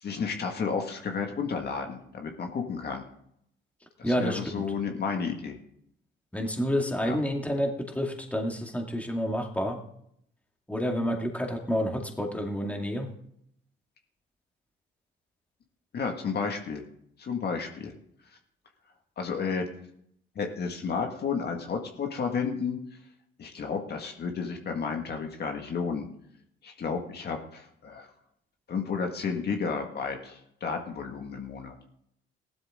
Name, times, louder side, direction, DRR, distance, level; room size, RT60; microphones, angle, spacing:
voice 1, 0.0-3.0 4.0-5.6 7.0-7.2 15.9-16.8 17.2-17.9 19.2-19.7 20.4-22.8 23.4-26.1 26.6-28.1 28.7-31.7, left 5 dB, 55° left, 3 dB, 2.0 m, -32 dB
voice 2, 4.0-4.7 6.3-9.8 10.7-13.1, equal, 5° left, 2 dB, 2.3 m, -29 dB
15.5 x 12.0 x 3.8 m, 0.71 s
cardioid pair, 90°, 20 cm